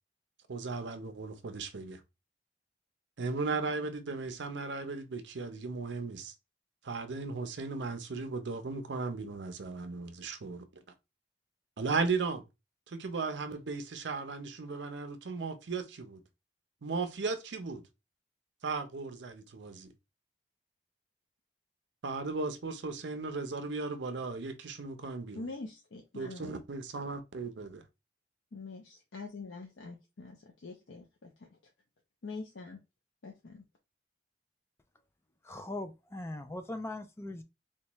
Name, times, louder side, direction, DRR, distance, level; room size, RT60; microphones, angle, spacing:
voice 1, 0.5-2.0 3.2-6.3 6.8-10.6 11.8-12.4 12.9-16.2 16.8-17.8 18.6-19.9 22.0-25.4 26.2-27.8, right 4 dB, 75° right, 0.6 m, -36 dB
voice 2, 25.3-26.6 28.5-31.5 32.2-32.8 33.2-33.6, left 3 dB, 85° left, 0.6 m, -44 dB
voice 3, 35.4-37.4, left 2 dB, 15° left, 0.3 m, -40 dB
4.3 x 2.3 x 2.9 m
head